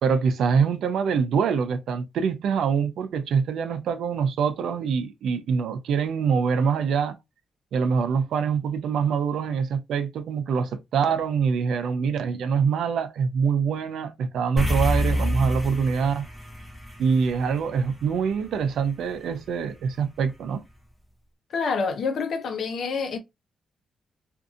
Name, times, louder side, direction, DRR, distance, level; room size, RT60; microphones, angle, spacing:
voice 1, 0.0-7.1 7.7-16.2 17.0-20.6, right 6 dB, 80° right, 0.5 m, -24 dB
sound 1, 14.6-19.1, equal, 5° left, 0.9 m, -28 dB
voice 2, 21.5-23.2, left 5 dB, 65° left, 0.8 m, -27 dB
2.6 x 2.5 x 2.4 m
cardioid pair, 105°, 0 cm